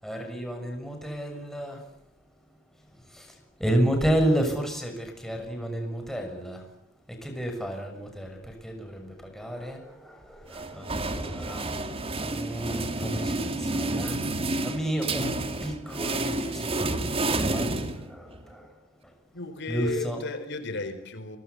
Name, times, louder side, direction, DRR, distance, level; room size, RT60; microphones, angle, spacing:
voice 1, 0.0-1.8 3.6-6.6 7.2-8.4 8.6-10.2 10.5-11.7 12.1-14.2 14.6-15.3 15.6-17.7 18.1-18.2 18.5-18.6 19.7-20.2, right 1 dB, ahead, 4 dB, 6.5 m, -30 dB
sound 1, 10.5-18.4, right 2 dB, 30° right, 2.6 m, -30 dB
voice 2, 19.3-21.4, left 3 dB, 60° left, 10 dB, 4.3 m, -34 dB
29.5 x 23.5 x 8.3 m, 0.70 s
head